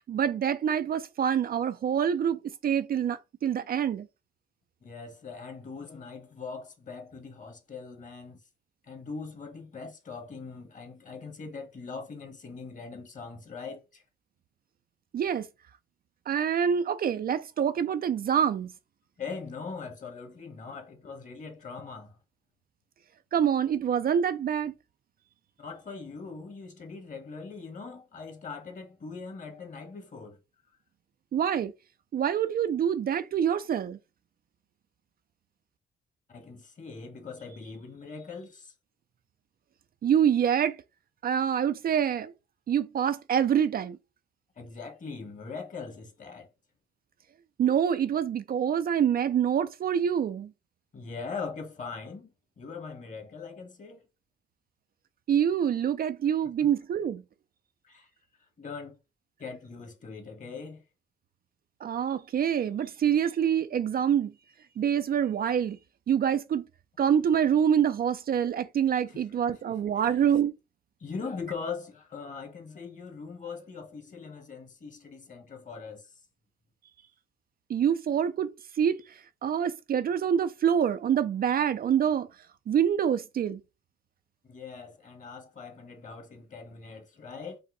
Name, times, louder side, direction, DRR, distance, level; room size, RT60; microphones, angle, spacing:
voice 1, 0.0-4.1 15.1-15.5 16.3-18.7 23.3-24.7 31.3-31.7 32.1-34.0 40.0-40.8 41.2-42.3 42.7-44.0 47.6-50.5 55.3-57.2 61.8-64.3 64.8-65.8 66.1-66.6 67.0-70.5 77.7-78.5 78.8-79.0 79.4-82.3 82.7-83.6, right 8 dB, 50° right, 0.5 m, -26 dB
voice 2, 4.8-8.4 8.8-14.0 19.2-22.2 25.6-30.4 36.3-38.7 44.5-46.5 50.9-54.0 56.6-56.7 57.8-58.1 58.6-59.0 59.4-60.8 69.1-69.2 69.5-70.2 71.0-76.1 84.4-87.6, left 4 dB, 40° left, 1.5 m, -41 dB
5.5 x 2.1 x 3.8 m
cardioid pair, 90°, 20 cm